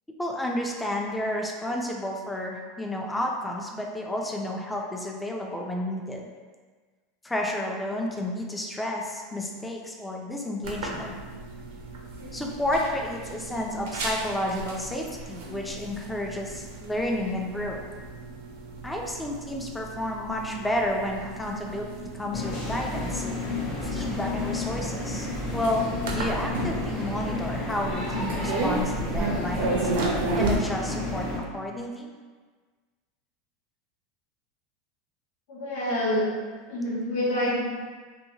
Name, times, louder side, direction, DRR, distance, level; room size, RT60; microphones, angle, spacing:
voice 1, 0.2-6.3 7.2-11.2 12.3-17.8 18.8-23.3 23.8-32.1 37.2-37.6, left 1 dB, 10° left, 0 dB, 0.3 m, -31 dB
sound 1, 10.6-30.5, right 2 dB, 80° right, 0.6 m, -34 dB
sound 2, 22.3-31.4, left 2 dB, 50° left, 0.7 m, -31 dB
voice 2, 35.5-36.3 36.7-37.6, left 1 dB, 85° left, -6 dB, 1.2 m, -26 dB
2.7 x 2.7 x 2.7 m, 1.4 s
supercardioid pair, 140°, 0 cm